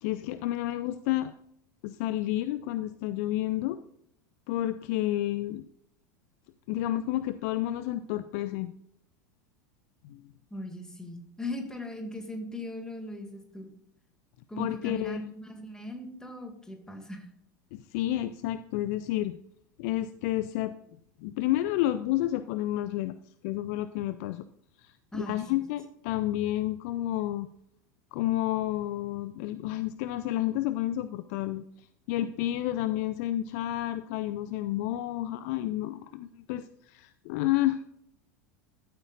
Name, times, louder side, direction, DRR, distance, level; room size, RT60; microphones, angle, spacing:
voice 1, 0.0-1.3 1.8-3.8 4.5-5.6 6.7-8.7 10.0-10.2 14.6-15.2 17.7-19.4 19.8-20.7 21.2-23.1 23.4-24.4 24.8-27.5 28.1-37.8, left 14 dB, 55° left, 13 dB, 0.5 m, -30 dB
voice 2, 10.5-13.7 14.5-17.2 25.1-25.6, left 1 dB, 5° left, 4 dB, 2.2 m, -39 dB
14.0 x 8.1 x 2.5 m, 0.72 s
figure-of-eight pair, 80°, 10 cm